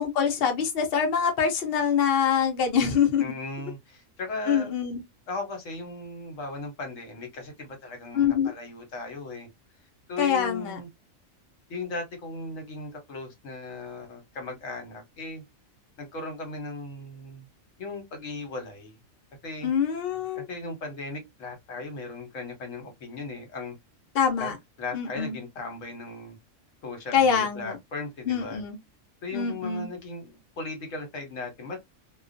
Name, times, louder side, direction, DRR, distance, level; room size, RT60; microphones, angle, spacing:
voice 1, 0.0-3.2 4.5-5.0 8.1-8.5 10.2-10.8 19.6-20.5 24.1-24.6 24.9-25.4 27.1-27.8 28.3-28.8 29.3-29.9, left 7 dB, 55° left, 0.7 m, -25 dB
voice 2, 3.2-4.7 5.3-9.5 10.1-10.9 11.7-15.4 16.0-17.5 17.8-18.9 19.4-19.7 20.4-23.7 24.4-24.5 24.8-26.4 26.8-28.6 29.2-31.9, left 3 dB, 75° left, 1.2 m, -37 dB
2.3 x 2.2 x 2.4 m
omnidirectional pair, 1.4 m